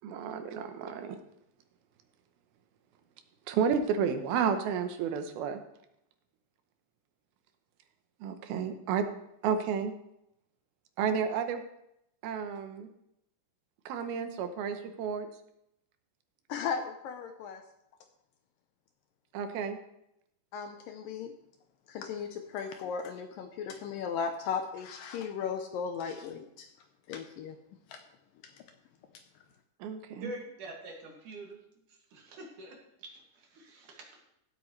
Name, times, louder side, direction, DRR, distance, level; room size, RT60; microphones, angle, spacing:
voice 1, 0.0-1.2 3.5-5.6 8.2-9.1 9.4-9.9 11.0-11.6 12.2-12.9 13.9-15.3 19.3-19.8 29.8-30.3, right 7 dB, 75° right, 7 dB, 2.5 m, -31 dB
voice 2, 16.5-17.6 20.5-21.3 21.9-26.7 27.1-27.6 27.9-28.0, left 6 dB, 80° left, 6 dB, 2.0 m, -36 dB
voice 3, 30.2-31.7 32.1-34.2, right 1 dB, 55° right, 0 dB, 3.2 m, -45 dB
16.5 x 8.4 x 3.2 m, 0.79 s
omnidirectional pair, 4.8 m